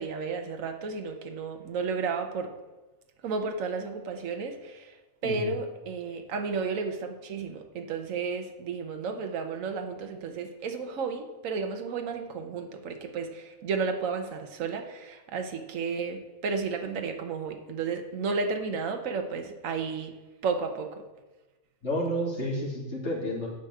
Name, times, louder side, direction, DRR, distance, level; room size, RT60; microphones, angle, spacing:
voice 1, 0.0-2.5 3.2-5.0 5.2-20.1 20.4-21.0, right 4 dB, 70° right, 5 dB, 1.3 m, -32 dB
voice 2, 5.2-5.5 21.8-23.5, equal, 55° left, -4 dB, 2.9 m, -30 dB
10.0 x 4.9 x 7.8 m, 1.1 s
omnidirectional pair, 1.5 m